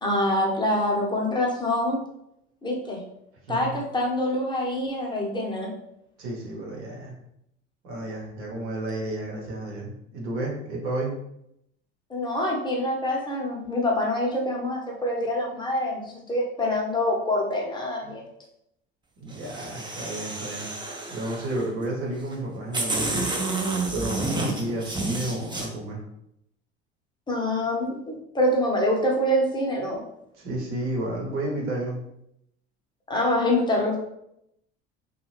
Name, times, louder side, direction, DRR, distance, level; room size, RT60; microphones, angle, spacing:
voice 1, 0.0-2.0 2.6-3.0 3.5-5.7 12.1-18.2 27.3-30.0 33.1-34.0, left 1 dB, 15° left, -2 dB, 0.8 m, -25 dB
voice 2, 6.2-7.1 7.8-11.1 18.0-18.1 19.2-20.7 21.1-23.3 23.9-26.0 30.4-32.0, right 1 dB, 75° right, -3 dB, 1.0 m, -31 dB
sound 1, 19.3-21.7 22.3-22.4 22.7-25.7, right 2 dB, 15° right, 0.5 m, -30 dB
2.7 x 2.3 x 3.0 m, 0.79 s
hypercardioid pair, 70°, 32 cm